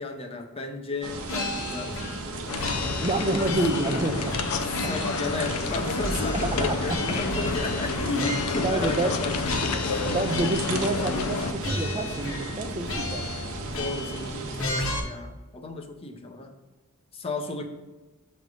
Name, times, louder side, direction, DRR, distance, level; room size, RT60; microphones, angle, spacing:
voice 1, 0.0-1.9 3.2-3.5 4.7-10.0 13.7-16.5 17.1-17.7, left 2 dB, 25° left, 4 dB, 0.7 m, -33 dB
sound 1, 1.0-14.7, right 2 dB, 75° right, 1.0 m, -36 dB
sound 2, 1.3-2.3 2.6-3.9 4.3-5.7 6.0-9.2 9.4-10.8 11.1-11.3 11.6-12.6 12.9-14.2 14.6-15.0, left 2 dB, 60° left, 1.2 m, -34 dB
sound 3, 2.5-11.5, left 4 dB, 80° left, 0.5 m, -30 dB
voice 2, 2.8-4.4 4.8-5.1 6.6-7.0 8.6-9.1 10.0-13.5, right 2 dB, 25° right, 5 dB, 0.4 m, -28 dB
7.3 x 3.3 x 5.3 m, 1.2 s
head